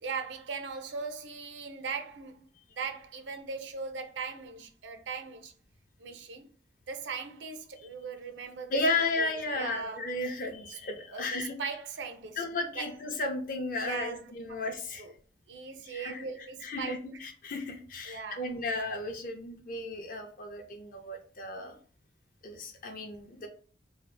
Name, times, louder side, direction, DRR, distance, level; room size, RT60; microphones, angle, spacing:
voice 1, 0.0-2.5 2.7-5.5 6.0-6.5 6.9-10.1 10.7-10.8 11.1-12.4 12.8-12.9 13.8-14.3 15.0-15.1 15.5-17.0 18.1-18.5, right 5 dB, 75° right, 0.5 m, -39 dB
voice 2, 8.7-11.5 12.4-15.1 15.8-16.3 16.6-21.8 22.4-23.5, left 2 dB, 45° left, 0.5 m, -34 dB
2.7 x 2.4 x 3.3 m
head